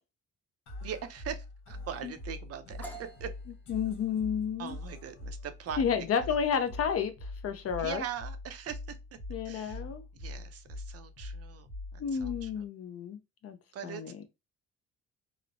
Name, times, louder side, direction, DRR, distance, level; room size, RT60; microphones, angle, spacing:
sound 1, 0.7-12.7, left 2 dB, 75° left, 1.0 m, -44 dB
voice 1, 0.8-3.3 4.6-5.8 6.2-6.4 7.8-9.2 9.4-9.8 10.1-12.6 13.7-14.2, right 8 dB, 55° right, 0.5 m, -41 dB
sound 2, 2.8-10.4, right 3 dB, 5° left, 0.6 m, -54 dB
voice 2, 3.7-4.8 5.8-8.0 9.3-10.0 12.0-13.6 13.8-14.2, left 7 dB, 50° left, 0.5 m, -31 dB
3.0 x 2.0 x 2.5 m
cardioid pair, 90°, 30 cm